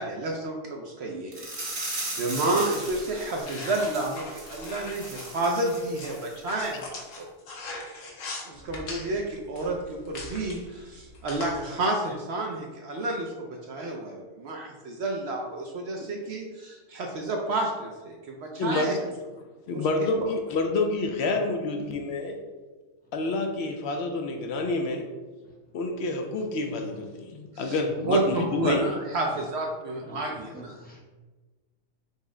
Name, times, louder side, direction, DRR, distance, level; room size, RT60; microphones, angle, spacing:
voice 1, 0.0-7.3 8.4-19.0 19.7-19.9 27.5-27.8 28.1-30.7, right 2 dB, 65° right, 0 dB, 0.7 m, -30 dB
sound 1, 1.3-6.3 6.6-6.8 7.2-7.3, right 2 dB, 50° right, 1.5 m, -37 dB
sound 2, 3.4-11.6, left 2 dB, 80° left, 1.2 m, -41 dB
voice 2, 18.6-18.9 19.7-22.4 23.1-25.1 25.7-28.9, left 3 dB, 65° left, 3 dB, 0.7 m, -28 dB
voice 3, 30.0-31.0, equal, 10° left, -3 dB, 0.7 m, -46 dB
5.3 x 2.1 x 3.7 m, 1.2 s
omnidirectional pair, 1.3 m